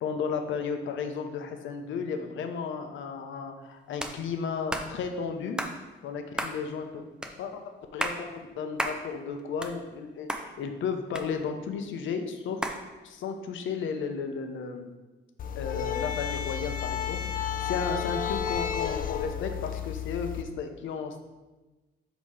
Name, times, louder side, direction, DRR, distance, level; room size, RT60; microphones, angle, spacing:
voice 1, 0.0-5.6 6.0-7.0 7.4-12.8 13.0-14.9 15.6-21.2, left 5 dB, 75° left, 6 dB, 0.8 m, -34 dB
sound 1, 4.0-4.2 4.7-4.9 5.6-5.8 6.4-6.6 7.2-7.3 7.8-8.2 8.8-9.0 9.4-10.0 10.3-10.4 11.2-11.7 12.6-12.8, right 1 dB, 5° right, 0.6 m, -32 dB
sound 2, 15.4-20.4, left 9 dB, 45° left, 0.4 m, -32 dB
7.3 x 3.1 x 4.9 m, 1.2 s
cardioid pair, 90°, 20 cm